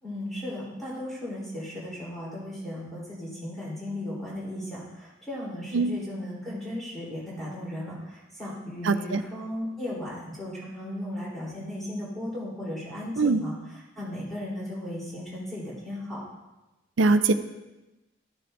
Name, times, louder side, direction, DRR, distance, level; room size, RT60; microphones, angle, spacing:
voice 1, 0.0-13.5 14.0-16.2, left 1 dB, ahead, -8 dB, 3.6 m, -36 dB
voice 2, 8.8-9.2 13.2-13.4 17.0-17.3, right 3 dB, 75° right, 10 dB, 0.5 m, -22 dB
13.5 x 7.6 x 2.6 m, 1.0 s
head